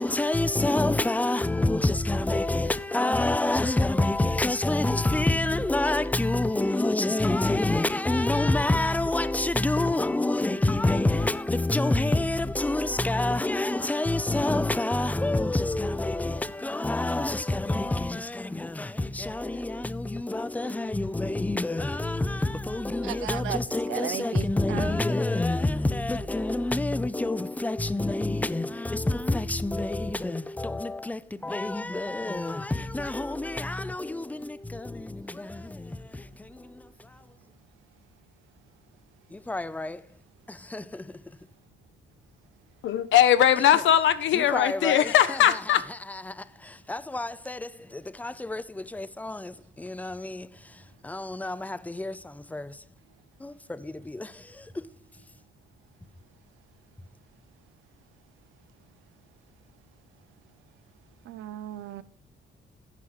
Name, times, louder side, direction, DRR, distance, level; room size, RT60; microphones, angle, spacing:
voice 1, 0.0-37.3 39.3-40.1 40.5-41.2 43.7-43.8 44.3-52.8 53.4-54.9, left 2 dB, 10° left, 0.5 m, -28 dB
voice 2, 23.0-23.6 23.9-24.9 61.3-62.0, right 12 dB, 80° right, 0.5 m, -35 dB
voice 3, 42.8-45.8, left 10 dB, 75° left, 0.8 m, -20 dB
9.8 x 5.7 x 4.7 m
cardioid pair, 90°, 20 cm